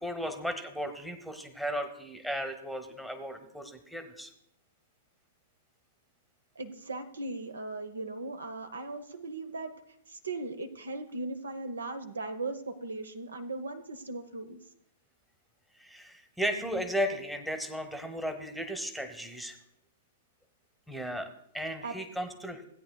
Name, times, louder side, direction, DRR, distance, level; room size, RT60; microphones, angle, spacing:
voice 1, 0.0-4.3 15.7-19.6 20.9-21.3 21.5-22.6, equal, ahead, 7 dB, 1.0 m, -35 dB
voice 2, 6.6-9.7 10.1-14.6 21.8-21.9, right 2 dB, 75° right, 10 dB, 0.8 m, -38 dB
16.5 x 9.1 x 2.3 m, 0.74 s
figure-of-eight pair, 105°, 0 cm